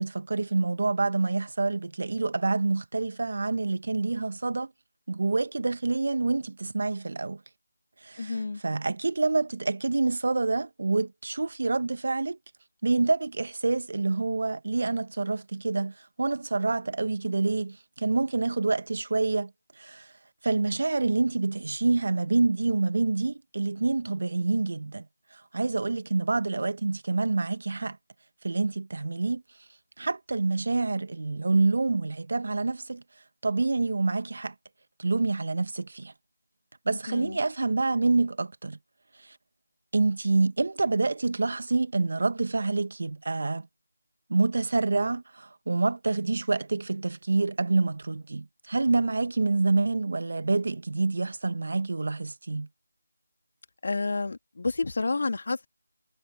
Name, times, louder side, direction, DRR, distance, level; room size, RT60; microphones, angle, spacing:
voice 1, 0.0-4.7 5.1-7.4 8.0-8.4 8.6-12.4 12.8-19.5 19.8-20.1 20.4-25.1 25.3-28.0 28.4-29.4 30.0-33.0 33.4-34.5 35.0-36.1 36.9-38.8 39.2-39.4 39.9-43.7 44.3-52.7, right 3 dB, 55° right, 1.7 m, -27 dB
voice 2, 8.2-8.6 37.1-37.4 53.8-55.7, left 3 dB, 55° left, 2.1 m, -29 dB
figure-of-eight pair, 165°, 0 cm